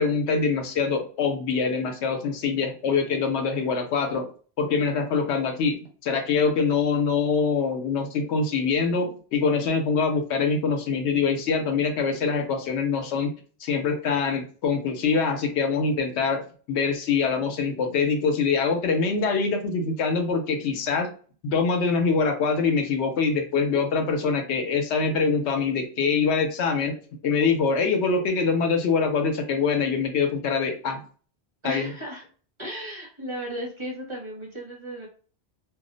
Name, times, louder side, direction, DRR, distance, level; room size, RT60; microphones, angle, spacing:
voice 1, 0.0-4.3 4.6-5.8 6.0-13.3 13.6-16.4 16.7-21.1 21.4-27.0 27.2-31.0 31.6-31.9, left 5 dB, 85° left, 4 dB, 0.9 m, -24 dB
voice 2, 31.6-32.2 32.6-35.1, equal, 30° right, -3 dB, 0.8 m, -35 dB
2.3 x 2.0 x 3.7 m, 0.41 s
omnidirectional pair, 1.1 m